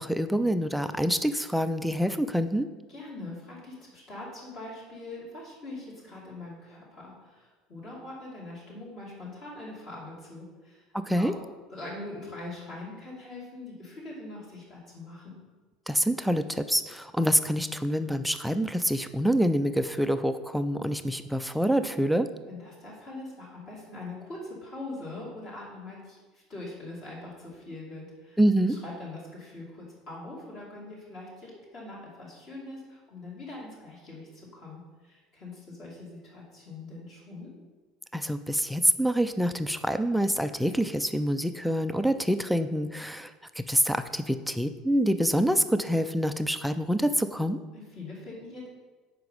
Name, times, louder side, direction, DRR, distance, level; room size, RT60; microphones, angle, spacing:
voice 1, 0.0-2.7 10.9-11.3 15.9-22.3 28.4-28.8 38.1-43.3 43.6-47.6, equal, ahead, 9 dB, 0.3 m, -26 dB
voice 2, 2.9-11.3 11.7-15.3 22.5-28.4 28.7-37.5 47.7-48.7, left 2 dB, 40° left, -5 dB, 2.5 m, -42 dB
7.8 x 5.0 x 5.4 m, 1.3 s
cardioid pair, 165°, 0 cm